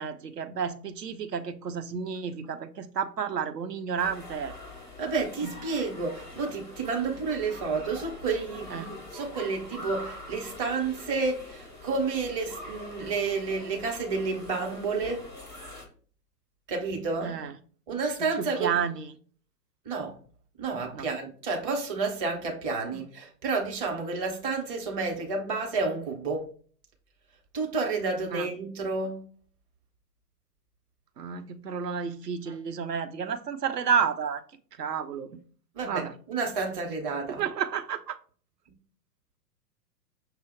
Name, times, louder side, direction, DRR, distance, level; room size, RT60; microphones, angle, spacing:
voice 1, 0.0-4.5 5.4-5.5 8.7-8.9 17.2-17.5 18.2-19.1 20.9-21.1 22.9-23.0 28.3-28.5 31.2-34.4 34.8-35.4 35.8-36.1 37.3-38.2, right 7 dB, 75° right, 0.7 m, -31 dB
sound 1, 4.0-15.8, left 1 dB, 10° left, 0.4 m, -44 dB
voice 2, 5.0-15.3 16.7-17.4 17.9-18.7 19.8-20.2 20.6-26.5 27.5-29.3 32.5-32.6 35.7-37.4, right 4 dB, 20° right, 0.7 m, -30 dB
5.8 x 2.0 x 4.2 m
figure-of-eight pair, 115°, 49 cm